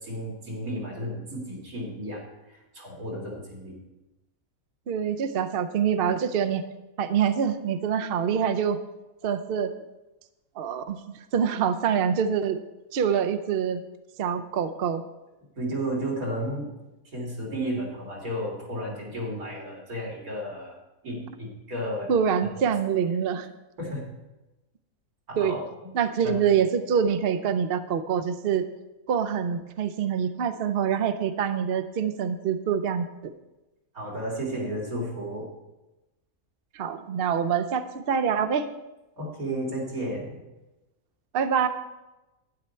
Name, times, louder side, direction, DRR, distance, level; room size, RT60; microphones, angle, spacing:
voice 1, 0.0-3.8 15.6-16.7 17.1-20.8 21.0-22.1 22.4-22.7 23.8-24.1 25.3-25.6 26.2-26.4 33.9-35.5 39.2-40.4, right 1 dB, 85° right, -3 dB, 3.5 m, -33 dB
voice 2, 4.9-6.6 7.0-8.8 9.2-9.7 10.6-12.6 12.9-13.8 14.2-15.0 22.1-23.5 25.4-25.6 25.9-28.6 29.1-33.1 36.7-38.7 41.3-41.7, right 7 dB, 55° right, 9 dB, 0.7 m, -25 dB
11.5 x 9.4 x 4.4 m, 1.0 s
omnidirectional pair, 1.5 m